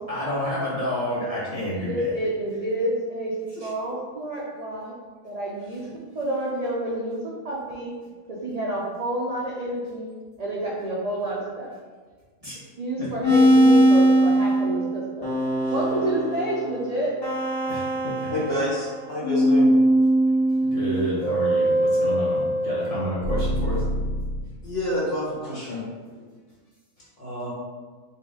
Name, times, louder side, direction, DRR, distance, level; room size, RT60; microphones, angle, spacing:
voice 1, 0.1-2.2 3.5-3.7 12.4-12.6 13.0-13.1 15.6-15.7 17.7-18.3 20.6-23.8, equal, 30° right, -9 dB, 0.8 m, -30 dB
voice 2, 1.9-4.9 5.2-5.9 6.1-7.9 8.3-10.1 10.4-11.7 12.8-15.3 15.7-17.1, right 1 dB, 60° right, -5 dB, 0.4 m, -29 dB
sound 1, 13.2-19.0 19.2-24.4, right 1 dB, 75° left, 1.7 m, -21 dB
voice 3, 18.3-19.7 24.6-26.2 27.2-27.5, left 1 dB, 50° left, -7 dB, 1.5 m, -29 dB
4.3 x 2.4 x 3.6 m, 1.4 s
omnidirectional pair, 1.4 m